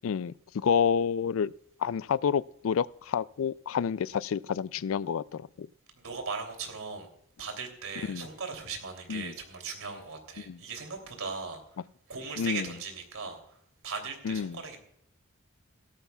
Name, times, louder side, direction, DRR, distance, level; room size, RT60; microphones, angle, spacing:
voice 1, 0.0-1.5 1.8-5.7 8.1-8.3 9.1-9.3 10.5-10.6 12.4-12.7 14.2-14.6, left 7 dB, 70° left, 0.4 m, -29 dB
voice 2, 6.0-7.1 7.4-11.6 12.1-13.6 13.8-14.8, right 4 dB, 85° right, 3.1 m, -38 dB
17.0 x 13.5 x 2.3 m
head